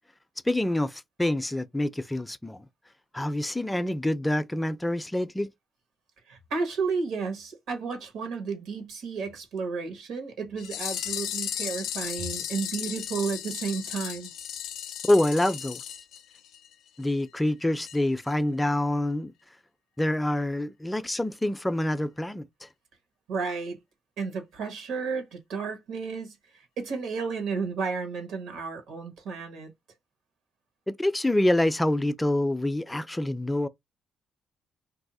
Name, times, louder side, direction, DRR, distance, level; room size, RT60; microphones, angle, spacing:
voice 1, 0.5-2.6 3.1-5.5 15.0-15.8 17.0-19.3 20.0-22.7 30.9-33.7, left 1 dB, 10° left, 0.3 m, -26 dB
voice 2, 6.3-14.3 23.3-23.8 24.2-29.7, right 5 dB, 85° right, 1.2 m, -32 dB
sound 1, 10.6-16.7 17.0-17.1 17.4-17.5 17.9-18.0 18.3-18.4, left 10 dB, 90° left, 0.4 m, -35 dB
2.6 x 2.0 x 4.0 m
cardioid pair, 90°, 0 cm